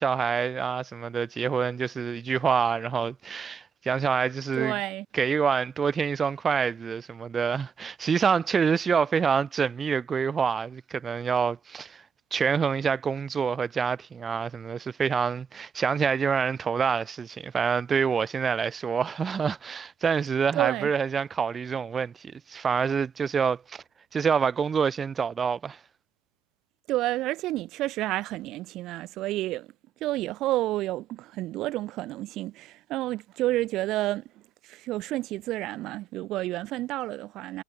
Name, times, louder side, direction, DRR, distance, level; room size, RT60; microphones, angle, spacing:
voice 1, 0.0-4.7 5.1-12.0 12.3-23.8 24.1-25.8, right 6 dB, 20° right, 1.0 m, -26 dB
voice 2, 4.6-5.1 20.5-20.9 26.9-29.7 30.0-37.6, right 16 dB, 40° right, 2.3 m, -30 dB
hypercardioid pair, 125°, 0 cm